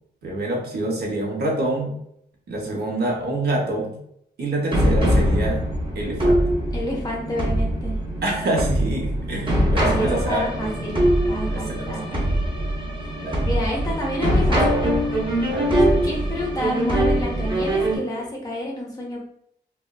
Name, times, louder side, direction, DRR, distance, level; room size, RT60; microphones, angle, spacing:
voice 1, 0.2-1.9 2.5-3.9 4.4-5.6 5.9-6.4 8.2-10.9 11.5-12.3 13.2-13.5 15.5-16.1, right 2 dB, 65° right, 0 dB, 0.7 m, -27 dB
sound 1, 4.7-18.0, equal, 25° right, 0.6 m, -22 dB
voice 2, 6.7-8.0 9.8-11.0 11.3-12.3 13.4-14.6 16.0-19.2, left 1 dB, 20° left, -2 dB, 0.6 m, -29 dB
3.0 x 2.0 x 2.3 m, 0.71 s
wide cardioid pair, 180°, 18 cm